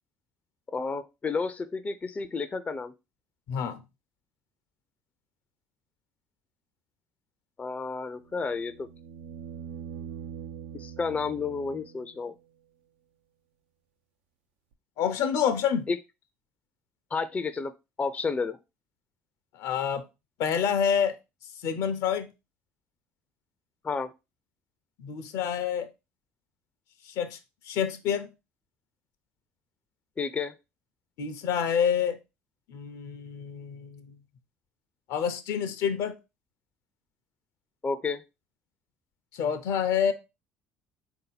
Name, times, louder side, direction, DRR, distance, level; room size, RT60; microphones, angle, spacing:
voice 1, 0.7-2.9 7.6-8.9 10.7-12.4 15.9-16.0 17.1-17.7 18.0-18.6 23.8-24.1 30.2-30.5 37.8-38.2, left 4 dB, 25° left, 0.4 m, -31 dB
voice 2, 3.5-3.8 15.0-15.9 19.5-20.0 20.4-21.1 21.6-22.3 25.0-25.9 27.1-27.4 27.7-28.3 31.2-32.2 32.7-34.1 35.1-36.2 39.3-40.1, left 8 dB, 70° left, 0.6 m, -27 dB
sound 1, 8.2-12.3 14.7-14.8, right 8 dB, 90° right, 0.4 m, -43 dB
3.8 x 2.7 x 3.9 m
hypercardioid pair, 75°, 6 cm